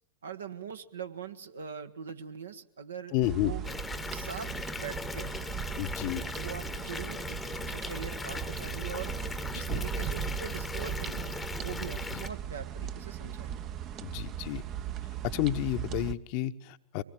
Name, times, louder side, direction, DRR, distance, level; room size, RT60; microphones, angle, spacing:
voice 1, 0.2-3.6 4.1-5.4 6.4-7.4 7.7-9.1 9.5-13.6, right 7 dB, 70° right, 8 dB, 1.4 m, -42 dB
voice 2, 3.1-3.5 5.8-6.2 9.5-9.8 14.0-14.6 15.2-17.0, left 14 dB, 45° left, 10 dB, 1.0 m, -31 dB
sound 1, 3.2-16.1, right 9 dB, 35° right, 0.9 m, -38 dB
Water tap faucet / Bathtub (filling or washing) / Fill (with liquid), 3.6-12.3, left 4 dB, 10° left, 1.1 m, -39 dB
24.5 x 19.5 x 9.2 m, 0.79 s
figure-of-eight pair, 90°, 0 cm